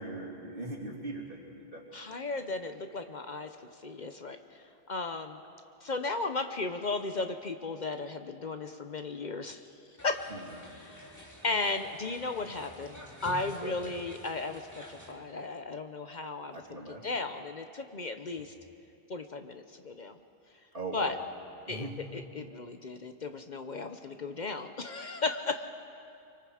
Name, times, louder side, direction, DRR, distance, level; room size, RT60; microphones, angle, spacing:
voice 1, 0.0-1.8 10.3-10.6 13.6-13.9 16.5-17.1 18.3-18.4 20.7-21.1 21.7-22.0, right 2 dB, 60° right, -2 dB, 3.1 m, -40 dB
voice 2, 1.9-5.4 5.8-9.6 10.0-10.3 10.8-18.5 19.1-20.2 20.9-21.2 21.7-21.9 22.1-25.7, left 3 dB, 50° left, 7 dB, 0.9 m, -35 dB
sound 1, 10.0-15.1, equal, 15° left, 2.2 m, -48 dB
25.5 x 23.5 x 4.9 m, 2.6 s
omnidirectional pair, 1.1 m